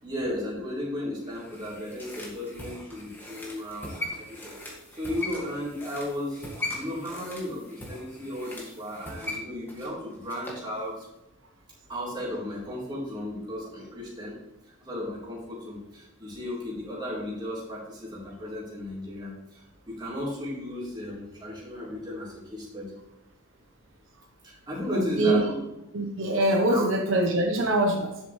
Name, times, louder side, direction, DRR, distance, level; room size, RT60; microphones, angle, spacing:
voice 1, 0.0-4.5 5.0-6.5 6.7-11.1 11.9-14.3 14.8-22.9 24.4-25.5 26.7-26.9, left 1 dB, 20° right, -6 dB, 3.8 m, -35 dB
sound 1, 1.3-10.7 11.0-11.1, left 1 dB, 10° left, 2.0 m, -39 dB
voice 2, 24.9-25.5 25.9-28.2, right 1 dB, 70° right, 2 dB, 1.0 m, -24 dB
11.5 x 7.4 x 3.3 m, 0.92 s
head